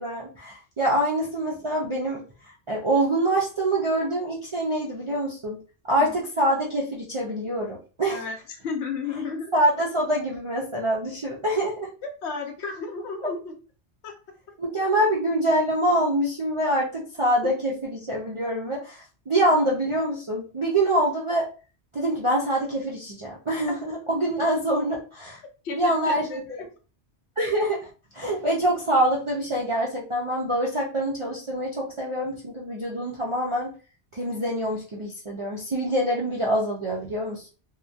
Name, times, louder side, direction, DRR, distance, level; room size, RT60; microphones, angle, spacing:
voice 1, 0.0-5.6 5.8-8.2 9.5-11.9 14.6-21.5 21.9-25.4 25.7-26.6 27.4-27.9 28.1-33.7 34.1-37.5, right 1 dB, 50° right, -3 dB, 0.3 m, -25 dB
voice 2, 8.1-9.5 12.0-13.5 14.0-14.1 25.6-26.7, left 4 dB, 75° left, 4 dB, 0.9 m, -33 dB
2.4 x 2.1 x 2.6 m, 0.36 s
omnidirectional pair, 1.2 m